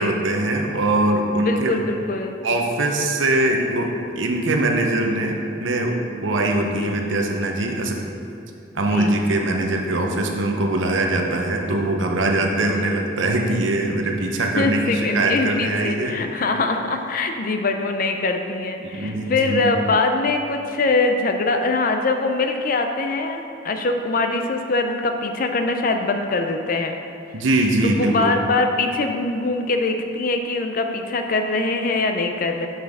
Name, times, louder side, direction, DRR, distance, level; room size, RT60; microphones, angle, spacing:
voice 1, 0.0-1.8 2.4-8.0 8.7-16.2 18.8-19.7 27.3-28.4, right 2 dB, 80° right, 2 dB, 0.8 m, -22 dB
voice 2, 1.3-2.4 6.6-6.9 8.9-9.2 12.7-12.9 14.6-26.9 27.8-32.7, left 3 dB, 45° left, 5 dB, 0.5 m, -23 dB
6.7 x 5.9 x 3.5 m, 2.7 s
head